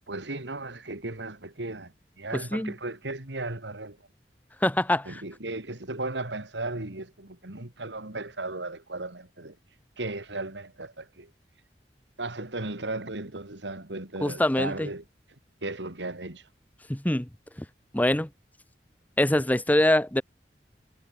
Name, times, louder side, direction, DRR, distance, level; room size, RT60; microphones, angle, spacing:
voice 1, 0.1-4.1 5.0-9.6 10.0-11.3 12.2-15.0 15.6-16.5, right 2 dB, 85° right, 2.7 m, -36 dB
voice 2, 4.6-5.1 14.2-14.9 16.9-17.3 17.9-18.3 19.2-20.2, left 1 dB, 10° left, 0.9 m, -23 dB
head